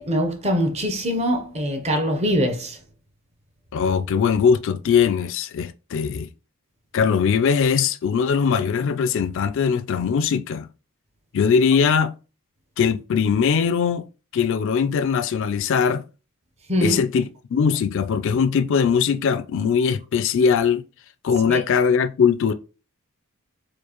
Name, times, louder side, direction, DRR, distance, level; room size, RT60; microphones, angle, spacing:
voice 1, 0.0-2.8 16.7-17.0 21.5-21.6, equal, 30° right, 0.7 m, -23 dB
voice 2, 3.7-6.3 6.9-10.7 11.3-12.1 12.8-14.1 14.3-16.0 16.8-20.8 21.2-22.5, left 6 dB, 60° left, 0.3 m, -20 dB
4.5 x 2.4 x 2.9 m
head